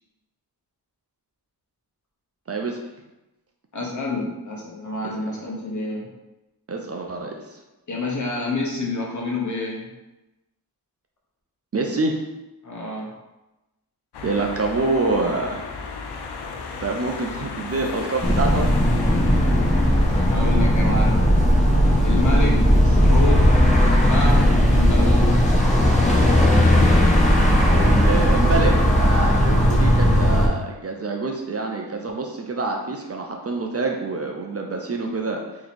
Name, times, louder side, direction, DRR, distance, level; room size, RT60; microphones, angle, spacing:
voice 1, 2.5-2.8 6.7-7.6 11.7-12.2 14.2-15.6 16.8-18.7 27.7-35.4, right 3 dB, 40° right, 1 dB, 0.4 m, -26 dB
voice 2, 3.7-6.0 7.9-9.9 12.6-13.1 20.3-21.3 22.0-23.6 23.8-25.4, left 2 dB, 50° left, -2 dB, 0.9 m, -28 dB
sound 1, 14.1-20.4, left 4 dB, 80° left, 0.5 m, -34 dB
sound 2, 18.2-30.5, equal, 20° left, 0.6 m, -17 dB
2.9 x 2.7 x 4.1 m, 1.0 s
wide cardioid pair, 105°, 39 cm